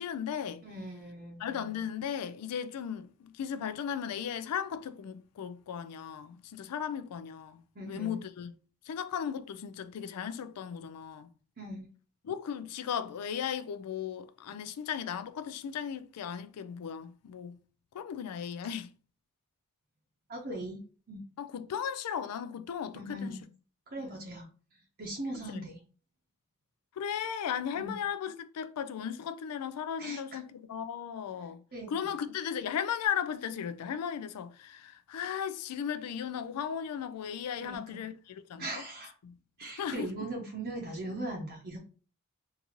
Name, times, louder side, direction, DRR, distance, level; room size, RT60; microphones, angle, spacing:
voice 1, 0.0-0.6 1.4-8.5 8.9-11.3 12.2-17.6 17.9-18.9 21.4-23.4 24.0-24.2 25.5-25.7 27.0-38.6 39.2-40.1, left 8 dB, 90° left, 0.4 m, -36 dB
voice 2, 0.6-1.4 7.7-8.2 11.6-11.9 20.3-20.8 21.1-21.2 22.9-23.4 23.9-24.5 25.0-25.8 27.7-28.0 30.0-30.4 31.7-31.9 37.6-38.0 38.6-39.1 39.6-41.8, right 1 dB, 45° right, 0.7 m, -39 dB
3.9 x 2.5 x 2.9 m
head